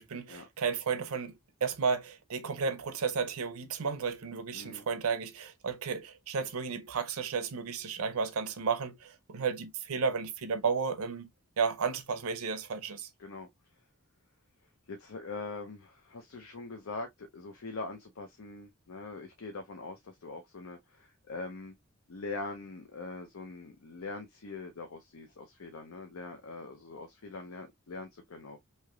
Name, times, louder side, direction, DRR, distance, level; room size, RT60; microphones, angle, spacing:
voice 1, 0.0-1.3 1.6-11.3 11.6-13.1, right 5 dB, 85° right, 0.6 m, -33 dB
voice 2, 4.5-4.9 13.2-13.5 14.9-21.8 22.1-28.6, left 3 dB, 70° left, 0.6 m, -43 dB
3.2 x 2.8 x 2.3 m
head